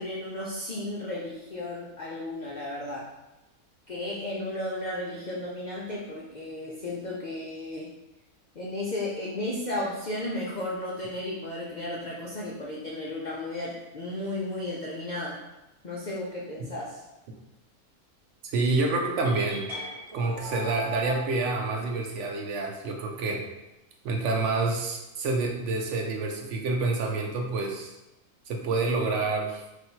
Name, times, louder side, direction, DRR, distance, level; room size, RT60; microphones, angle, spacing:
voice 1, 0.0-3.1 3.9-7.9 8.5-15.4 15.8-17.0, left 1 dB, 75° left, -4 dB, 0.4 m, -34 dB
voice 2, 18.5-19.7 20.1-23.4 24.0-27.9 28.5-29.6, right 3 dB, 65° right, 1 dB, 0.9 m, -28 dB
sound 1, 19.2-21.2, right 1 dB, 25° right, 1.2 m, -38 dB
3.2 x 2.6 x 4.4 m, 0.98 s
omnidirectional pair, 1.5 m